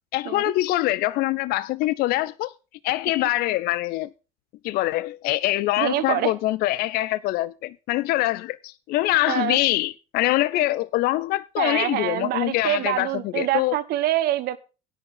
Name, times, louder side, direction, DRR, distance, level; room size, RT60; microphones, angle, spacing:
voice 1, 0.1-2.5 2.8-4.1 4.6-13.8, left 17 dB, 60° left, 0.5 m, -24 dB
voice 2, 5.8-6.3 9.3-9.6 11.6-14.6, right 13 dB, 60° right, 1.2 m, -25 dB
13.5 x 10.0 x 3.8 m
hypercardioid pair, 65°, 18 cm